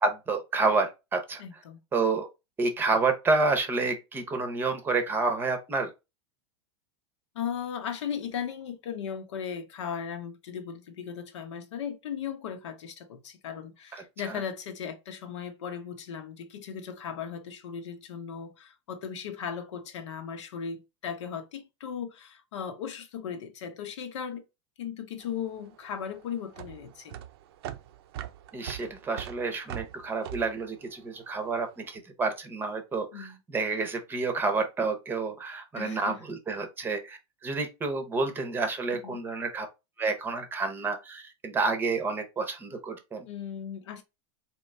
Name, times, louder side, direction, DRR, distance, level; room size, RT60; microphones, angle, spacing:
voice 1, 0.0-1.4 1.9-2.3 2.6-5.9 14.3-14.4 28.5-39.7 40.0-43.3, right 3 dB, 15° right, 0.7 m, -29 dB
voice 2, 1.4-1.8 7.3-24.4 24.8-27.2 33.1-33.4 35.8-36.2 39.0-39.2 43.3-44.0, left 7 dB, 85° left, 1.0 m, -37 dB
sound 1, 25.2-31.7, right 11 dB, 60° right, 0.5 m, -42 dB
3.8 x 3.0 x 3.2 m
supercardioid pair, 155°, 15 cm